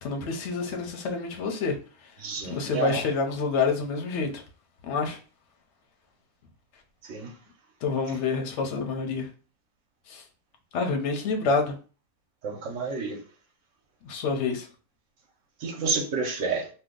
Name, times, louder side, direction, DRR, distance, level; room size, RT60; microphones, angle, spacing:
voice 1, 0.0-4.4 4.8-5.2 7.8-9.3 10.1-10.3 10.7-11.8 14.0-14.7, left 4 dB, 60° left, 0.8 m, -28 dB
voice 2, 2.2-3.0 7.0-7.3 12.4-13.2 15.6-16.7, right 4 dB, 60° right, 1.0 m, -30 dB
2.7 x 2.3 x 3.7 m
omnidirectional pair, 1.6 m